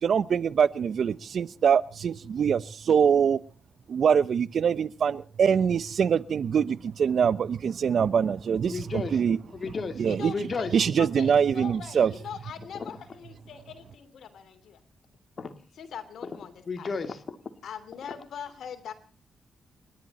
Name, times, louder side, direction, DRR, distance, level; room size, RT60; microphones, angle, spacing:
voice 1, 0.0-3.4 3.9-9.4 10.0-10.3 10.7-12.1, right 7 dB, 70° right, 19 dB, 0.8 m, -24 dB
voice 2, 8.6-9.2 9.5-10.7 12.7-12.9 15.4-15.5 16.7-17.4, left 4 dB, 55° left, 8 dB, 2.6 m, -33 dB
voice 3, 10.1-14.8 15.8-16.9 17.6-18.9, left 8 dB, 80° left, 9 dB, 2.9 m, -41 dB
29.5 x 11.5 x 4.3 m, 0.38 s
cardioid pair, 60°, 0 cm